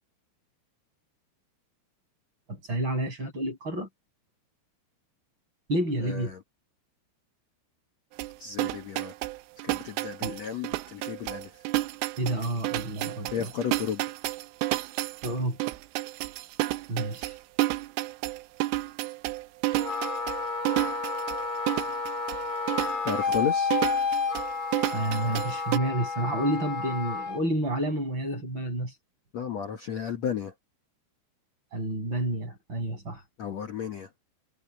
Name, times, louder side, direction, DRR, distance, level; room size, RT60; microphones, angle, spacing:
voice 1, 2.5-3.9 5.7-6.3 10.2-10.4 12.2-13.5 15.2-15.7 16.9-17.4 24.9-28.9 31.7-33.2, right 1 dB, 25° right, 7.1 m, -30 dB
voice 2, 6.0-6.4 8.4-9.1 9.6-11.7 13.3-14.0 23.0-23.7 29.3-30.5 33.4-34.1, left 8 dB, 85° left, 1.5 m, -33 dB
sound 1, 8.2-25.8, right 18 dB, 90° right, 3.4 m, -31 dB
Wind instrument woodwind instrument, 19.7-27.4, left 4 dB, 40° left, 5.8 m, -31 dB
omnidirectional pair, 5.5 m